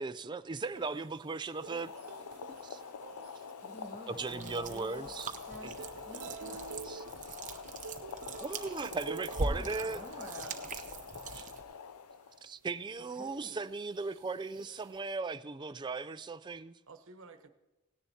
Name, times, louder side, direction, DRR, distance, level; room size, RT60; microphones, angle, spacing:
voice 1, 0.0-1.9 2.6-2.8 4.1-5.3 5.6-5.7 6.8-7.0 7.7-7.8 8.4-10.0 11.2-11.5 12.4-16.7, right 3 dB, 20° right, 0.4 m, -38 dB
sound 1, 0.6-11.9 12.4-12.5 13.0-15.2, right 6 dB, 80° right, 0.5 m, -51 dB
Boiling, 1.5-12.5, left 6 dB, 80° left, 0.5 m, -46 dB
voice 2, 3.6-5.1 5.4-6.6 9.4-10.8 13.0-13.6, left 1 dB, 35° left, 1.6 m, -49 dB
sound 2, 4.2-11.6, right 3 dB, 35° right, 0.7 m, -42 dB
voice 3, 9.7-10.7 16.9-17.5, right 4 dB, 60° right, 1.0 m, -52 dB
17.5 x 10.0 x 2.8 m
head